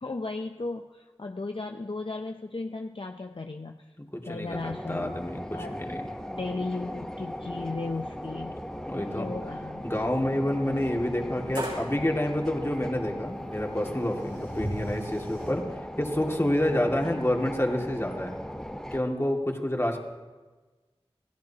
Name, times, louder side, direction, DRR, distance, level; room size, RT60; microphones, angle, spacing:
voice 1, 0.0-3.8 4.2-5.2 5.5-5.8 6.3-8.6 9.0-9.8 16.8-17.0, left 3 dB, 55° left, 4 dB, 0.6 m, -36 dB
voice 2, 4.0-6.1 8.9-9.3 9.8-18.3 18.9-20.0, left 1 dB, 25° left, 1 dB, 2.2 m, -28 dB
sound 1, 4.5-19.0, equal, 5° left, 0.9 m, -38 dB
sound 2, 7.3-7.4 7.6-7.7 8.5-8.6 10.6-10.7 11.5-11.9 13.2-13.3 13.7-15.5, right 1 dB, 55° right, 6.3 m, -37 dB
28.5 x 16.5 x 2.9 m, 1.3 s
wide cardioid pair, 45°, 11 cm